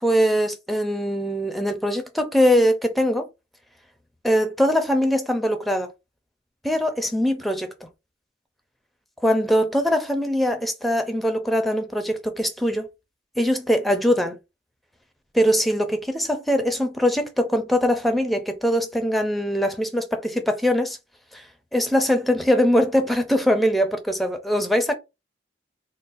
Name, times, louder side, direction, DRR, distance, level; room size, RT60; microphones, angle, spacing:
voice 1, 0.0-3.3 4.2-5.9 6.6-7.7 9.2-12.9 13.4-14.4 15.3-21.0 21.3-21.5 21.7-25.0, equal, ahead, 0.5 m, -22 dB
3.9 x 2.0 x 2.5 m
head